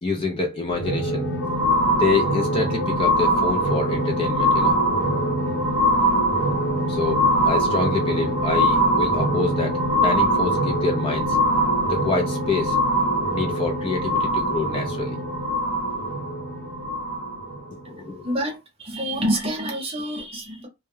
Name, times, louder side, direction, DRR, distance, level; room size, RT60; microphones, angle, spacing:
voice 1, 0.0-1.3 1.9-4.8 5.8-6.0 6.9-11.4 11.9-12.8 13.3-15.2 17.8-18.3, left 3 dB, 25° left, 0.4 m, -26 dB
sound 1, 0.7-17.6 18.3-18.4, equal, 55° left, 0.8 m, -22 dB
voice 2, 18.2-20.7, equal, 25° right, 0.7 m, -27 dB
2.2 x 2.1 x 3.1 m
head